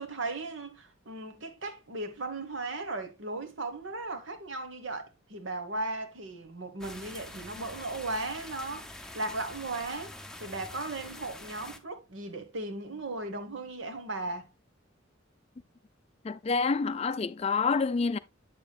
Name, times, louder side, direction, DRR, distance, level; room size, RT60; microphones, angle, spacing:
voice 1, 0.0-14.5, right 2 dB, 70° right, 1.4 m, -37 dB
sound 1, 6.8-11.8, left 1 dB, 5° left, 0.7 m, -45 dB
voice 2, 16.2-18.2, left 4 dB, 30° left, 0.4 m, -27 dB
8.2 x 7.1 x 2.3 m
head